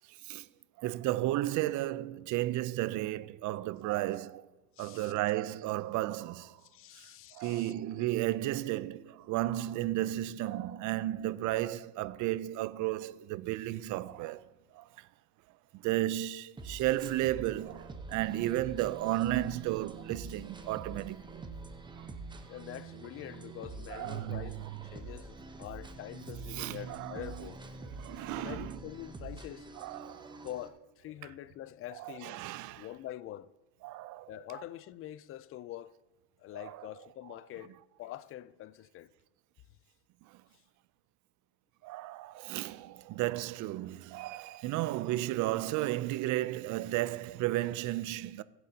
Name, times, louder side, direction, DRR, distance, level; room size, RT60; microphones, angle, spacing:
voice 1, 0.8-4.5 4.8-6.6 7.3-14.4 14.7-15.1 15.7-21.4 22.0-22.1 23.9-24.7 26.5-27.5 28.0-28.8 29.8-30.5 32.0-32.9 33.8-34.3 36.6-36.9 41.8-48.4, right 15 dB, 50° right, 0.5 m, -33 dB
voice 2, 4.8-5.1 6.6-7.7 22.5-27.6 28.4-29.7 30.4-32.5 32.8-33.5 34.3-35.9 36.4-39.1, left 13 dB, 35° left, 0.4 m, -45 dB
sound 1, 16.6-30.7, right 3 dB, 10° right, 0.9 m, -46 dB
21.5 x 7.8 x 2.8 m
supercardioid pair, 105°, 41 cm